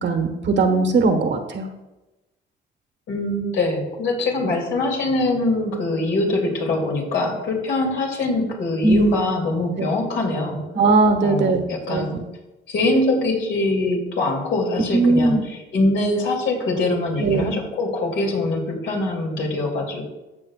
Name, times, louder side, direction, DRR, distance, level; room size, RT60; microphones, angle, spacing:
voice 1, 0.0-1.7 8.8-9.2 9.8-9.9 10.7-11.6 11.9-12.1 14.9-15.4 17.2-17.6, right 3 dB, 65° right, 6 dB, 1.4 m, -19 dB
voice 2, 3.1-10.6 11.2-12.2 12.7-20.0, left 2 dB, 70° left, 0 dB, 2.6 m, -23 dB
15.0 x 6.5 x 2.4 m, 1.0 s
cardioid pair, 90°, 20 cm